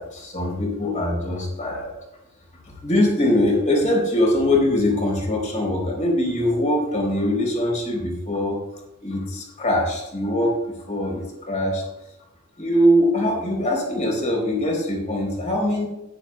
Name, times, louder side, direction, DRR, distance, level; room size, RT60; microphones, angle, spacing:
voice 1, 0.0-1.9 2.8-8.6 9.0-10.6 10.9-11.8 12.6-15.9, left 1 dB, 35° left, 0 dB, 3.7 m, -22 dB
17.5 x 10.5 x 2.2 m, 0.90 s
head